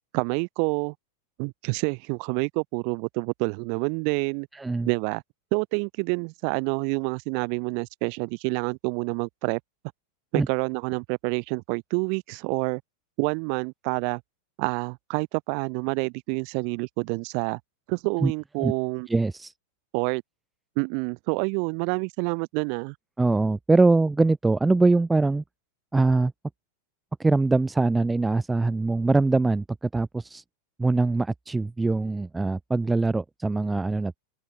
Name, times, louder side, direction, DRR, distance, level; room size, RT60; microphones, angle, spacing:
voice 1, 0.1-0.9 1.4-4.5 4.9-5.2 5.5-9.6 10.3-12.8 13.2-14.2 14.6-17.6 17.9-19.1 19.9-20.2 20.8-22.9, right 40 dB or more, 45° right, 7.4 m, -28 dB
voice 2, 4.5-4.9 10.3-10.5 18.2-18.3 18.6-18.7 19.1-19.5 23.2-25.4 25.9-26.3 27.2-30.4 30.8-34.2, right 3 dB, 10° right, 1.4 m, -23 dB
open air
figure-of-eight pair, 90°, 0 cm